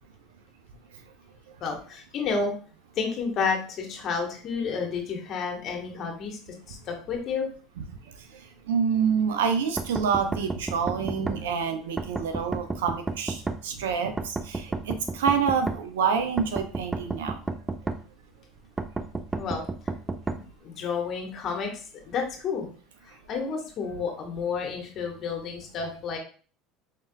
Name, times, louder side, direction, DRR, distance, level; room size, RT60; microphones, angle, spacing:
voice 1, 1.6-2.5 3.0-6.4 6.7-7.5 19.3-19.6 20.3-22.7 23.0-26.2, left 5 dB, 50° left, 2 dB, 1.2 m, -31 dB
voice 2, 8.7-17.3, right 6 dB, 90° right, 7 dB, 0.6 m, -27 dB
sound 1, 9.8-11.4 12.0-13.6 14.2-15.8 16.4-18.0 18.8-20.4, right 3 dB, 15° right, 0.4 m, -31 dB
4.8 x 3.3 x 2.2 m, 0.41 s
supercardioid pair, 95°, 0 cm